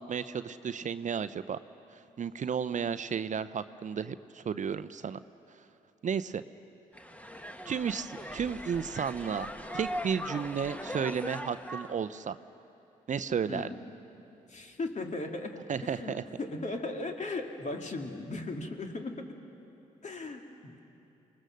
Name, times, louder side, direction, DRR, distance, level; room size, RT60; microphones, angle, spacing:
voice 1, 0.0-1.6 2.2-5.2 6.0-6.4 7.7-12.4 13.1-13.7 15.7-16.2, right 7 dB, 45° right, 13 dB, 0.7 m, -33 dB
sound 1, 6.9-12.0, equal, 10° left, 1.6 m, -40 dB
voice 2, 13.5-13.9 14.5-19.3 20.0-20.8, left 2 dB, 45° left, 3 dB, 2.4 m, -37 dB
27.5 x 19.5 x 6.5 m, 2.9 s
hypercardioid pair, 45°, 17 cm